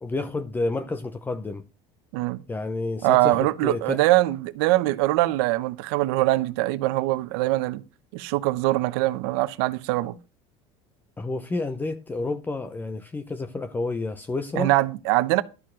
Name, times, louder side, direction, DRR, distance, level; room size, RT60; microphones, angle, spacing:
voice 1, 0.0-1.6 2.5-4.0 11.2-14.7, left 3 dB, 15° left, 0.7 m, -30 dB
voice 2, 3.0-7.8 8.1-10.2 14.6-15.4, right 18 dB, 80° right, 0.9 m, -23 dB
12.5 x 4.4 x 7.5 m
supercardioid pair, 110°, 13 cm